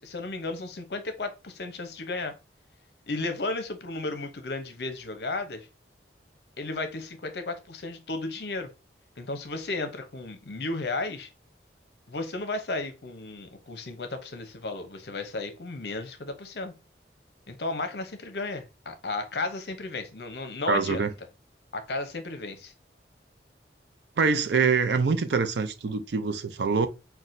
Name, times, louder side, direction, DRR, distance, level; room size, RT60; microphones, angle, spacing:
voice 1, 0.0-2.3 3.1-5.7 6.6-8.7 9.2-11.3 12.1-16.7 17.5-21.1 21.7-22.7, left 3 dB, 65° left, 0.7 m, -34 dB
voice 2, 20.7-21.1 24.2-26.9, right 5 dB, 75° right, 0.5 m, -24 dB
5.9 x 2.2 x 2.6 m
head